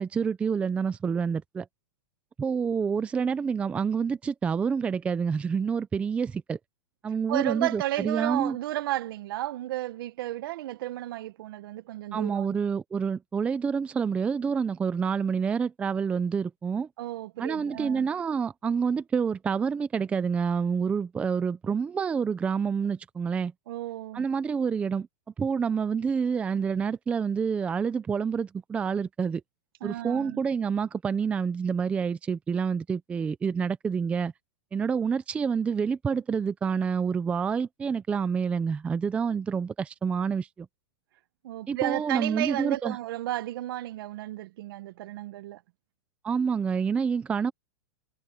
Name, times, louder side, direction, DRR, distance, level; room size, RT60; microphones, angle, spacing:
voice 1, 0.0-1.7 2.4-6.6 7.0-8.6 12.1-16.9 17.4-23.5 24.1-25.1 25.4-29.4 29.8-34.3 34.7-40.7 41.7-43.0 46.2-47.5, right 6 dB, 10° right, 0.5 m, -28 dB
voice 2, 7.3-12.6 17.0-18.1 23.7-24.3 29.8-30.4 41.4-45.6, right 15 dB, 60° right, 0.9 m, -33 dB
supercardioid pair, 165°, 14 cm